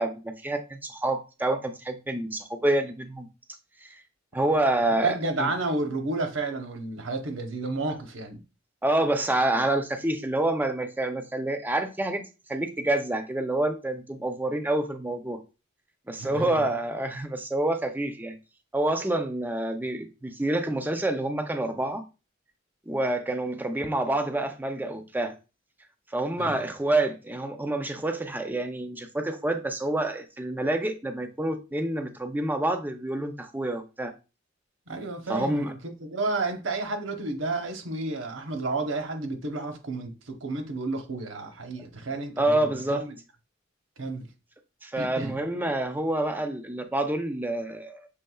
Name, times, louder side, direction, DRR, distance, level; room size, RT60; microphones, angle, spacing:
voice 1, 0.0-3.3 4.3-5.5 8.8-12.2 12.5-15.4 16.1-18.3 18.7-22.0 22.9-25.4 26.1-34.1 35.3-35.7 42.4-43.0 44.8-48.1, right 1 dB, 10° right, 0.5 m, -27 dB
voice 2, 5.0-8.4 16.2-16.7 26.4-26.6 34.9-43.2 44.0-44.3 45.0-45.3, right 3 dB, 85° right, 0.9 m, -31 dB
6.5 x 3.4 x 2.3 m
head